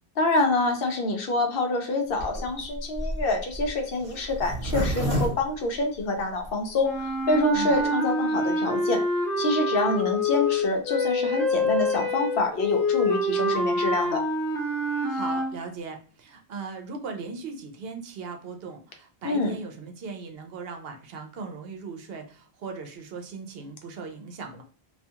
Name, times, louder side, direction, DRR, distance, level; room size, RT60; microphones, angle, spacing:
voice 1, 0.2-6.9 7.3-9.0 9.4-14.2 19.2-19.6, left 2 dB, 65° left, 3 dB, 0.7 m, -26 dB
Zipper (clothing), 2.1-6.5 7.0-7.1 7.2-7.3 7.5-7.9, equal, 35° right, 0.9 m, -30 dB
sound 1, 6.8-15.5, left 1 dB, 5° left, 0.4 m, -26 dB
voice 2, 15.1-24.6, right 4 dB, 70° right, 4 dB, 0.7 m, -38 dB
2.4 x 2.3 x 2.7 m, 0.41 s
omnidirectional pair, 1.1 m